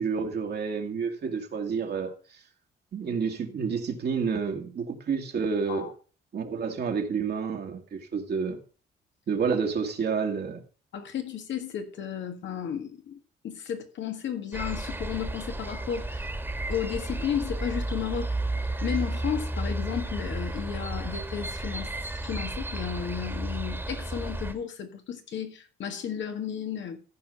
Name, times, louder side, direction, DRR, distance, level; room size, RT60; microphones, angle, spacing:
voice 1, 0.0-2.1 2.9-5.9 6.3-8.6 9.3-10.6, right 5 dB, 55° right, 1.9 m, -29 dB
voice 2, 10.9-16.3 16.7-18.4 18.8-21.9 22.2-27.0, left 8 dB, 70° left, 1.8 m, -33 dB
sound 1, 14.5-24.5, right 1 dB, 10° right, 1.7 m, -32 dB
14.5 x 4.8 x 5.3 m
cardioid pair, 90°, 20 cm